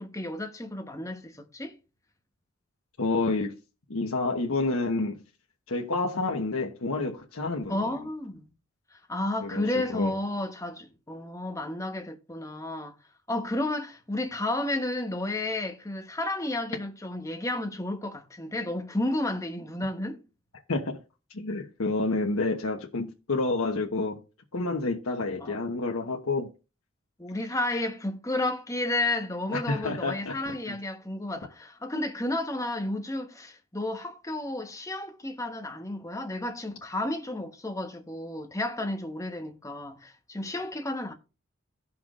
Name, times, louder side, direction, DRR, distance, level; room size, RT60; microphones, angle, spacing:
voice 1, 0.0-1.8 7.7-8.5 8.9-12.9 13.3-20.2 25.4-25.5 27.2-41.1, left 1 dB, 15° left, 1.1 m, -32 dB
voice 2, 3.0-3.5 3.9-5.2 5.7-7.9 9.4-9.7 9.9-10.2 20.7-21.0 21.3-24.2 24.5-26.5 29.5-30.8, left 3 dB, 80° left, 1.1 m, -29 dB
16.5 x 5.8 x 2.5 m
head